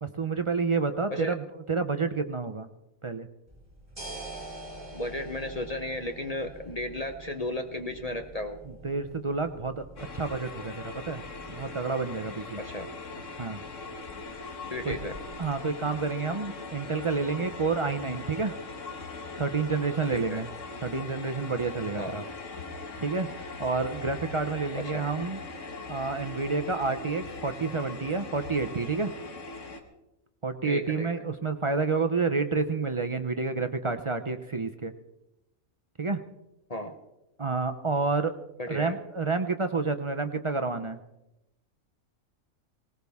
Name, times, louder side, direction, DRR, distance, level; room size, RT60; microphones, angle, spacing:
voice 1, 0.0-2.7 3.0-3.3 8.8-9.9 10.1-11.2 11.5-12.6 13.4-13.6 14.8-15.0 15.4-18.6 19.4-20.5 20.8-22.2 23.0-25.4 25.9-29.1 30.4-34.9 36.0-36.2 37.4-38.3 38.7-41.0, right 4 dB, 40° right, 8 dB, 0.4 m, -29 dB
sound 1, 3.5-15.6, right 2 dB, 25° right, 6.8 m, -47 dB
voice 2, 4.9-8.6 12.6-12.9 14.7-15.2 20.1-20.4 22.0-22.1 24.7-25.1 30.6-31.1 36.7-36.9 38.6-39.0, left 1 dB, 30° left, 6 dB, 0.9 m, -34 dB
sound 2, 10.0-29.8, left 3 dB, 60° left, 1.7 m, -40 dB
19.0 x 18.5 x 3.5 m, 0.91 s
omnidirectional pair, 1.5 m